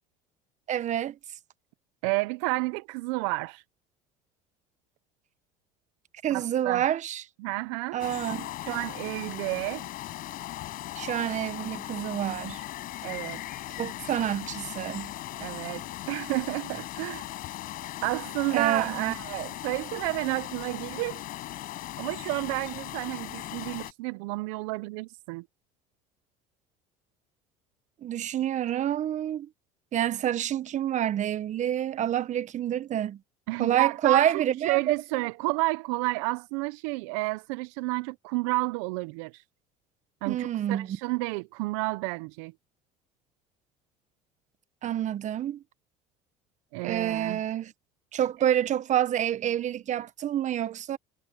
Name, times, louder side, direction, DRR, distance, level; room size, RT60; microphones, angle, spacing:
voice 1, 0.7-1.2 6.2-7.2 7.9-8.5 11.0-12.6 13.8-15.1 18.5-19.1 28.0-29.5 29.9-33.2 33.6-34.9 40.3-40.9 44.8-45.6 46.8-47.7 48.1-51.0, right 11 dB, 45° right, 1.3 m, -28 dB
voice 2, 2.0-3.6 6.3-6.9 7.4-8.0 8.6-9.8 13.0-13.4 15.4-17.3 18.0-21.2 22.0-25.4 33.5-39.4 40.2-42.5 46.7-47.4, right 24 dB, 75° right, 0.8 m, -31 dB
sound 1, 8.0-23.9, left 15 dB, 60° left, 5.8 m, -38 dB
hypercardioid pair, 80°, 17 cm